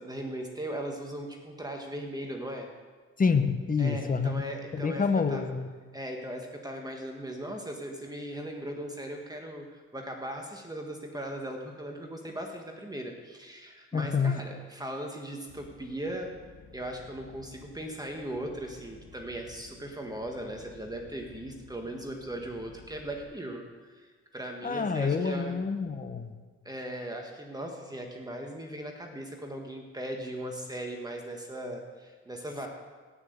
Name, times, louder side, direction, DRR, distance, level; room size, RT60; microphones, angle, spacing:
voice 1, 0.0-2.7 3.8-5.0 5.3-5.5 5.9-16.3 16.7-24.1 24.3-25.6 26.7-32.7, right 1 dB, 15° right, 2 dB, 1.7 m, -38 dB
voice 2, 3.2-4.4 4.7-5.7 13.9-14.4 24.6-26.3, left 5 dB, 30° left, 9 dB, 1.1 m, -27 dB
sound 1, 15.5-23.2, left 4 dB, 80° left, 2.5 m, -54 dB
17.5 x 6.3 x 8.0 m, 1.4 s
cardioid pair, 90°, 30 cm